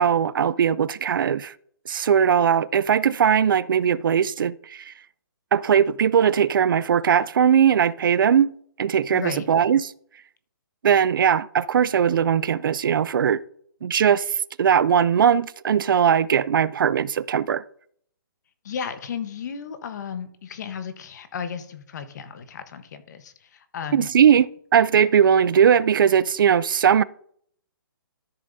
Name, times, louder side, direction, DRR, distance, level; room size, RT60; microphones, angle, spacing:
voice 1, 0.0-1.5 1.9-4.9 5.5-8.5 8.8-9.9 10.8-13.4 13.8-17.6 23.9-24.5 24.7-27.0, right 8 dB, 65° right, 0.4 m, -19 dB
voice 2, 9.1-9.5 18.6-24.1, left 7 dB, 50° left, 1.1 m, -34 dB
13.0 x 6.9 x 2.7 m
hypercardioid pair, 155°, 12 cm